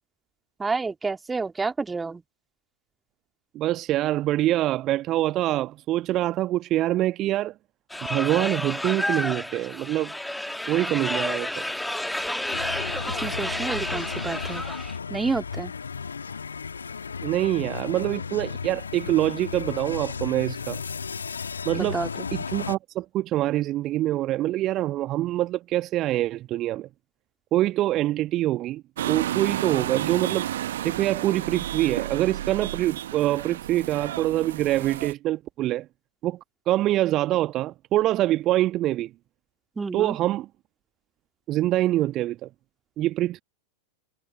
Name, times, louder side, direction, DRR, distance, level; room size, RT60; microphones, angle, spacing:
voice 1, 0.6-2.2 13.1-14.6 15.1-15.7 21.7-22.3 39.8-40.2, right 4 dB, 10° right, 2.6 m, -29 dB
voice 2, 3.5-7.5 8.1-10.1 10.7-11.6 17.2-20.8 21.6-22.0 22.3-26.9 27.5-28.8 29.1-30.5 30.8-35.9 36.2-36.4 36.7-39.1 39.9-40.4 41.5-42.5 43.0-43.4, right 15 dB, 35° right, 1.3 m, -25 dB
sound 1, 7.9-15.0, left 1 dB, 5° left, 2.2 m, -30 dB
sound 2, 12.5-22.8, left 5 dB, 75° left, 2.2 m, -34 dB
sound 3, 29.0-35.1, right 12 dB, 60° right, 1.3 m, -31 dB
figure-of-eight pair, 90°, 0 cm